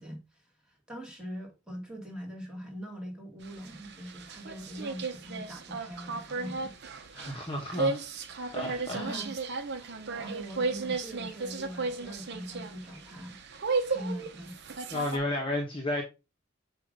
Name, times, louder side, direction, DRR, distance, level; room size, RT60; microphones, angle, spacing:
voice 1, 0.0-7.6 8.7-9.3 9.7-13.4 13.8-14.6, equal, 5° right, 1.9 m, -43 dB
sound 1, 3.4-15.2, right 3 dB, 55° right, 0.9 m, -35 dB
voice 2, 7.1-8.0 8.5-9.2 14.9-16.0, left 1 dB, 25° left, 1.1 m, -32 dB
7.5 x 2.6 x 5.3 m
head